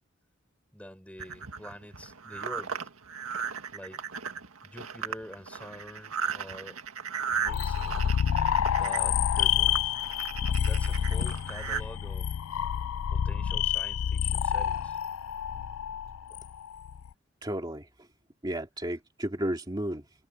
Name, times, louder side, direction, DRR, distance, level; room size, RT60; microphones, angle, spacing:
voice 1, 0.7-2.8 3.7-4.0 4.6-6.8 7.3-8.0 8.7-10.0 10.6-12.3 13.1-15.0 16.3-16.4, equal, 5° left, 5.5 m, -46 dB
sound 1, 1.2-11.8, right 6 dB, 80° right, 1.9 m, -36 dB
sound 2, 7.5-17.1, left 9 dB, 85° left, 0.4 m, -28 dB
voice 2, 17.4-18.1 18.4-20.3, right 1 dB, 20° right, 2.5 m, -33 dB
head